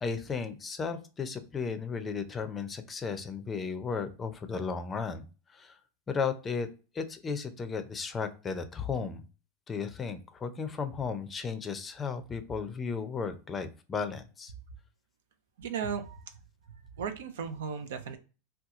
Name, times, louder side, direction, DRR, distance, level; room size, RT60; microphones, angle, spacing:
voice 1, 0.0-5.8 6.1-6.7 6.9-9.2 9.7-14.5, left 5 dB, 20° left, 9 dB, 0.5 m, -35 dB
voice 2, 15.6-16.3 16.7-18.2, right 6 dB, 80° right, 7 dB, 0.6 m, -36 dB
2.9 x 2.3 x 3.5 m, 0.34 s
supercardioid pair, 125°, 0 cm